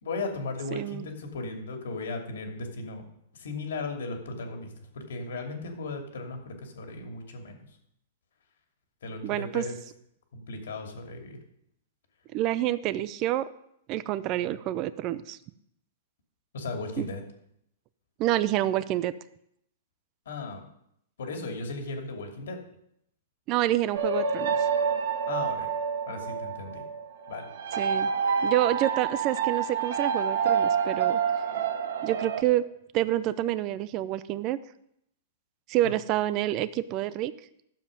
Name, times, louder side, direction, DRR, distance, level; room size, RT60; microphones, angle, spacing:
voice 1, 0.0-3.0 3.3-7.6 9.0-9.8 10.3-11.4 16.5-17.2 20.3-20.7 21.2-22.6 25.3-25.7 26.1-26.8 27.3-27.5 35.8-35.9, left 3 dB, 85° left, 3 dB, 2.7 m, -36 dB
voice 2, 0.7-1.1 9.2-9.6 12.3-13.5 13.9-15.4 17.0-17.1 18.2-19.1 23.5-24.6 27.8-28.1 28.4-31.2 32.0-32.6 32.9-34.6 35.7-37.3, right 14 dB, 30° right, 15 dB, 0.4 m, -28 dB
sound 1, 23.9-32.4, right 6 dB, 75° right, 1.5 m, -28 dB
12.0 x 7.4 x 5.2 m, 0.74 s
hypercardioid pair, 160°, 0 cm